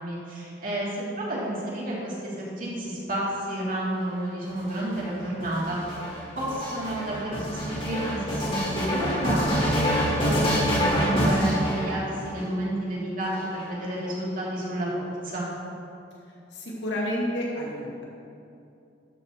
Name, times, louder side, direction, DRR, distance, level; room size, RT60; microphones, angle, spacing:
voice 1, 0.0-6.0 6.4-15.5, right 1 dB, 50° right, -6 dB, 2.9 m, -31 dB
sound 1, 4.5-12.4 13.2-14.1, equal, 30° left, 2.1 m, -26 dB
voice 2, 16.5-18.0, equal, 80° left, -4 dB, 2.6 m, -30 dB
12.5 x 5.5 x 6.3 m, 2.6 s
head